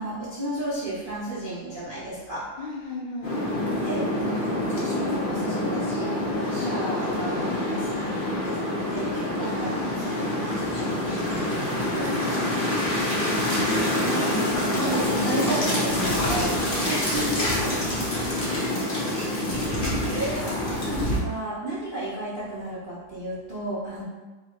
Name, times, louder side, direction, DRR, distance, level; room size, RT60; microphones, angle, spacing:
voice 1, 0.0-2.5 3.8-9.7 10.0-12.1 13.4-16.5 16.9-17.7 18.4-18.7 20.0-24.0, right 1 dB, 45° right, -10 dB, 0.6 m, -33 dB
voice 2, 2.6-3.5 6.3-6.8 9.3-10.0 12.3-14.0 16.3-20.1, left 3 dB, 70° left, -3 dB, 1.2 m, -39 dB
sound 1, 3.2-21.2, left 1 dB, 85° left, 0.4 m, -26 dB
3.4 x 2.7 x 4.3 m, 1.3 s
omnidirectional pair, 2.3 m